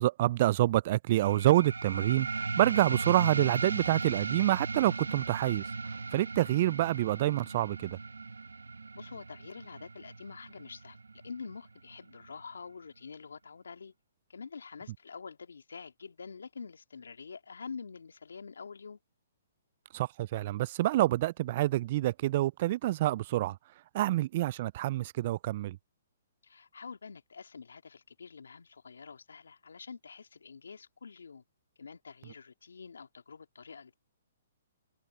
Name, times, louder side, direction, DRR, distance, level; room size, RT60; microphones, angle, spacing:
voice 1, 0.0-5.6 6.1-8.0 19.9-23.6 23.9-25.8, right 15 dB, 45° right, 0.3 m, -27 dB
sound 1, 1.2-12.3, right 4 dB, 90° right, 1.4 m, -37 dB
voice 2, 8.9-11.0 11.2-13.9 14.3-19.0 26.4-31.4 31.8-33.9, left 5 dB, 80° left, 2.6 m, -46 dB
hypercardioid pair, 130°, 0 cm